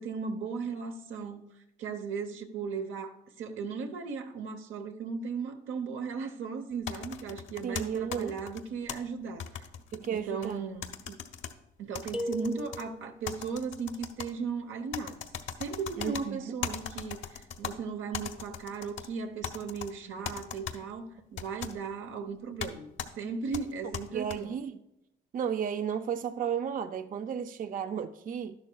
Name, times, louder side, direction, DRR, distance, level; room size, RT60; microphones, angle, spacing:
voice 1, 0.0-1.5 1.8-9.7 10.1-10.9 11.8-15.2 15.6-22.9 23.2-24.6, right 5 dB, 80° right, 0.9 m, -37 dB
sound 1, 6.9-9.0 9.4-10.5 10.8-11.5 11.9-12.8 13.2-14.3 14.9-16.2 16.6-17.7 18.1-19.1 19.4-19.9 20.2-20.8 21.4-21.7 22.6-22.7 23.0-23.1 23.5-24.4, left 8 dB, 75° left, 0.8 m, -38 dB
voice 2, 7.6-8.3 9.9-10.6 11.1-11.2 16.0-16.5 24.1-24.7 25.3-28.6, right 8 dB, 45° right, 0.4 m, -33 dB
sound 2, 12.1-13.3, equal, 5° right, 0.7 m, -36 dB
12.0 x 11.0 x 2.3 m
cardioid pair, 90°, 20 cm